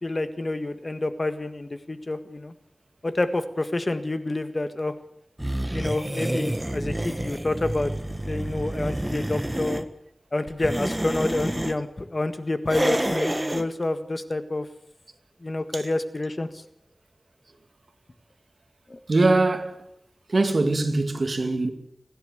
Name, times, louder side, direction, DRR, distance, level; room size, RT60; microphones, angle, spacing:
voice 1, 0.0-2.5 3.0-4.9 5.7-7.9 8.3-9.9 10.3-14.7 15.4-16.6 18.9-19.0, left 2 dB, 45° left, 1.7 m, -28 dB
sound 1, 5.4-9.8 10.5-11.8 12.7-13.7, right 1 dB, 15° right, 1.5 m, -28 dB
voice 2, 19.1-19.8 20.3-21.7, right 2 dB, 70° right, 2.4 m, -22 dB
30.0 x 11.5 x 8.2 m
wide cardioid pair, 75°, 0 cm